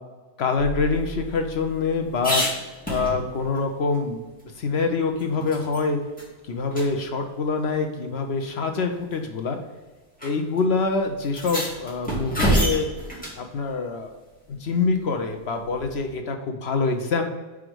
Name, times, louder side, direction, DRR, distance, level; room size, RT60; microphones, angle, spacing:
voice 1, 0.4-2.4 2.9-4.2 4.6-6.0 6.5-9.6 10.2-12.9 13.4-14.1 14.5-17.2, left 4 dB, 70° left, 5 dB, 1.0 m, -25 dB
sound 1, 0.6-3.6 3.9-4.0 4.4-5.8 6.2-6.3 6.7-6.9 7.9-8.0 8.9-9.2 10.2-10.3 10.6-10.7 11.2-13.4 15.7-16.1, equal, 10° left, 2.0 m, -28 dB
5.0 x 4.9 x 6.1 m, 1.2 s
omnidirectional pair, 1.1 m